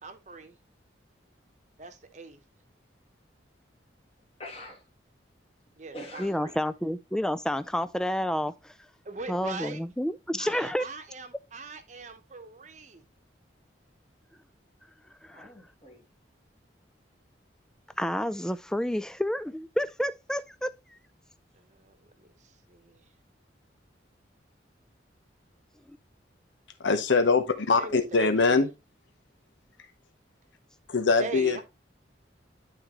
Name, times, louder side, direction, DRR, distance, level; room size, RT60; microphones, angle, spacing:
voice 1, 0.0-0.5 1.8-2.4 5.8-6.5 9.0-9.8 10.4-13.0 21.7-22.0 22.7-23.0 27.8-28.6 31.2-31.6, right 3 dB, 40° right, 1.0 m, -41 dB
voice 2, 4.4-4.9 5.9-6.7 15.3-16.0, equal, 30° left, 1.6 m, -44 dB
voice 3, 6.2-8.7 9.3-10.9 15.2-15.5 18.0-20.7 25.9-26.0, equal, 5° left, 0.3 m, -30 dB
voice 4, 26.8-28.7 30.9-31.6, left 4 dB, 80° left, 0.9 m, -23 dB
11.5 x 3.9 x 3.0 m
head